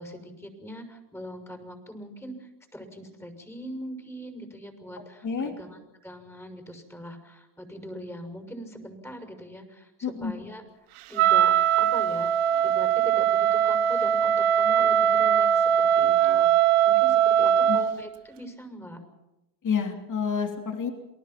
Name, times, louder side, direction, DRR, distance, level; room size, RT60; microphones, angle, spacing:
voice 1, 0.0-10.6 11.1-12.3 12.6-19.0, equal, 5° left, 6 dB, 6.5 m, -41 dB
voice 2, 5.2-5.5 10.0-10.3 17.6-17.8 19.6-20.9, left 6 dB, 40° left, 4 dB, 3.2 m, -28 dB
Wind instrument woodwind instrument, 11.2-18.0, right 9 dB, 85° right, 1.2 m, -21 dB
29.0 x 19.0 x 6.0 m, 0.98 s
supercardioid pair, 85°, 49 cm